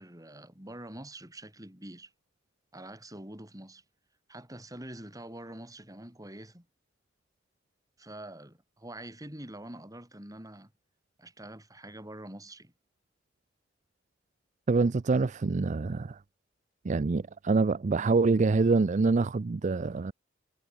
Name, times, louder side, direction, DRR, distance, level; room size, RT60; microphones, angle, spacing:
voice 1, 0.0-2.1 2.7-3.8 4.3-6.7 8.0-10.7 11.2-12.7, right 1 dB, 20° right, 6.5 m, -45 dB
voice 2, 14.7-16.2 16.8-20.1, right 3 dB, 40° right, 0.4 m, -25 dB
head